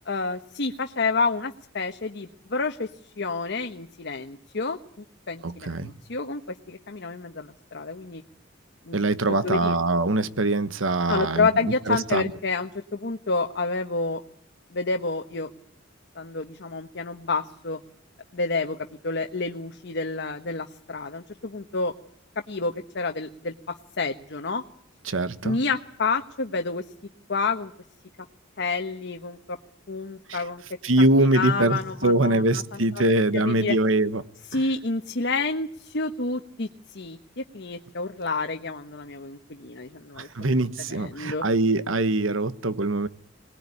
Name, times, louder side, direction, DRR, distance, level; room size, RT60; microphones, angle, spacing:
voice 1, 0.1-2.9 3.2-4.8 5.3-8.2 8.8-9.0 9.3-9.7 11.1-14.2 14.7-15.5 16.1-17.8 18.3-18.8 19.0-21.9 22.5-24.6 25.4-26.8 27.3-27.7 28.6-29.6 29.9-30.6 31.0-31.1 31.3-33.0 33.3-33.8 34.5-40.3 40.9-41.4, left 3 dB, 60° left, 1.2 m, -29 dB
voice 2, 5.4-5.9 8.9-12.2 25.0-25.6 30.3-30.4 30.8-34.3 34.5-34.6 40.2-43.1, right 2 dB, 90° right, 1.3 m, -23 dB
23.0 x 19.5 x 9.9 m
head